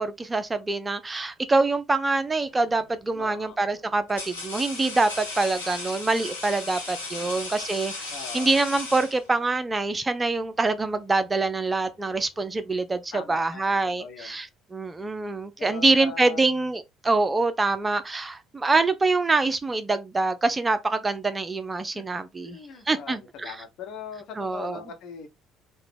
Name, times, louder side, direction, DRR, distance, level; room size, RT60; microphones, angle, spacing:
voice 1, 0.0-22.6 22.9-23.6 24.4-24.8, right 3 dB, 20° right, 0.4 m, -25 dB
sound 1, 2.5-2.8 3.6-9.6, left 3 dB, 80° left, 1.0 m, -36 dB
voice 2, 3.1-3.6 7.2-7.3 8.1-8.5 13.1-14.4 15.6-16.5 21.8-22.0 22.4-25.3, left 6 dB, 55° left, 0.9 m, -41 dB
3.8 x 2.1 x 3.3 m
figure-of-eight pair, 55°, 0 cm